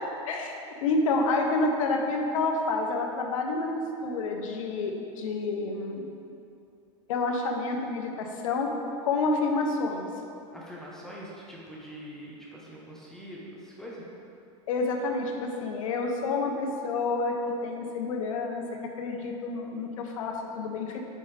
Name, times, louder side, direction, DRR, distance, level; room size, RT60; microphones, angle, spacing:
voice 1, 0.8-6.1 7.1-8.7 9.0-10.1 14.7-17.3 17.6-18.6 19.0-21.0, left 3 dB, 85° left, 2 dB, 1.0 m, -29 dB
voice 2, 10.5-14.1, equal, 5° left, -5 dB, 1.1 m, -43 dB
8.9 x 5.4 x 3.5 m, 2.7 s
supercardioid pair, 130°, 17 cm